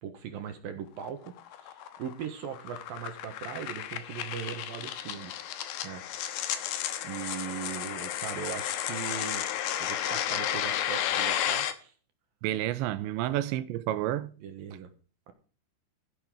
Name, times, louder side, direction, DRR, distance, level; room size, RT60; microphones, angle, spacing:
voice 1, 0.0-5.3 5.8-6.0 7.0-9.4 9.8-11.9 13.2-13.3 14.4-14.9 15.3-15.4, right 8 dB, 65° right, 2.6 m, -39 dB
sound 1, 1.0-11.7, left 11 dB, 70° left, 2.9 m, -33 dB
voice 2, 12.4-14.3, right 13 dB, 80° right, 3.1 m, -30 dB
13.5 x 11.0 x 3.7 m
omnidirectional pair, 5.2 m